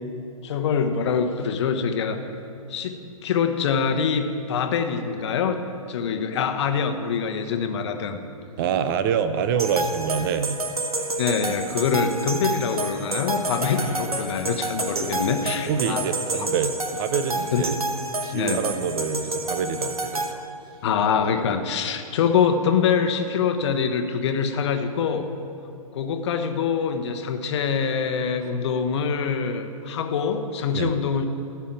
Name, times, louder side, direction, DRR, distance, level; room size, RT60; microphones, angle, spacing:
voice 1, 0.4-2.2 2.7-8.2 11.2-16.1 17.5-17.8 18.3-18.6 20.8-25.3 25.9-31.3, left 6 dB, 50° left, 7 dB, 1.0 m, -24 dB
voice 2, 8.6-10.6 15.7-17.8 18.2-20.4 30.7-30.9, right 7 dB, 35° right, 11 dB, 0.7 m, -26 dB
sound 1, 9.6-20.3, right 2 dB, 80° right, 1.2 m, -29 dB
13.5 x 5.7 x 8.8 m, 2.7 s
figure-of-eight pair, 115°, 19 cm